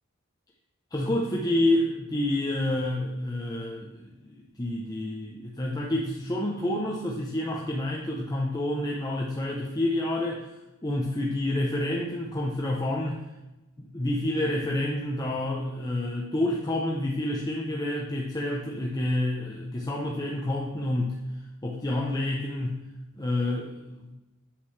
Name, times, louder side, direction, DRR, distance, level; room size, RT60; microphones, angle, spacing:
voice 1, 0.9-10.5 10.8-13.2 13.8-21.2 21.6-22.9 23.2-24.1, left 1 dB, 20° left, -3 dB, 0.8 m, -28 dB
8.7 x 7.5 x 3.3 m, 1.0 s
head